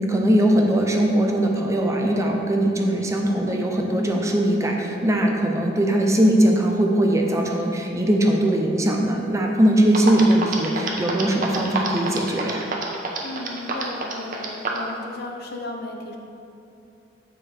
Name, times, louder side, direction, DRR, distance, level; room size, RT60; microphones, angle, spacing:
voice 1, 0.0-12.6, right 1 dB, 15° right, 1 dB, 0.6 m, -20 dB
sound 1, 9.9-14.9, right 4 dB, 45° right, 0.9 m, -27 dB
voice 2, 13.2-16.2, left 2 dB, 55° left, 2 dB, 0.8 m, -34 dB
8.1 x 4.6 x 4.9 m, 2.7 s
head